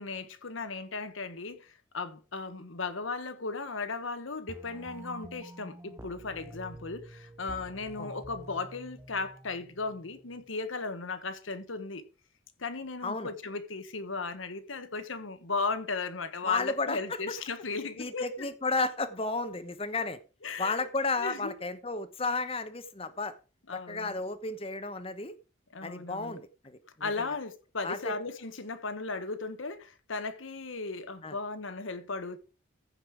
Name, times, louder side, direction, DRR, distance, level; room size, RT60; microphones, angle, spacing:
voice 1, 0.0-12.0 12.6-18.3 20.4-20.9 21.2-21.6 23.7-24.2 25.7-26.4 27.0-32.4, left 3 dB, 80° left, 1.3 m, -36 dB
sound 1, 4.5-10.5, right 1 dB, 15° right, 0.5 m, -48 dB
voice 2, 16.4-17.2 18.0-20.2 20.6-23.3 23.7-25.3 25.8-27.3 27.8-28.1 31.2-31.4, left 3 dB, 30° left, 1.0 m, -33 dB
14.5 x 5.4 x 4.8 m
head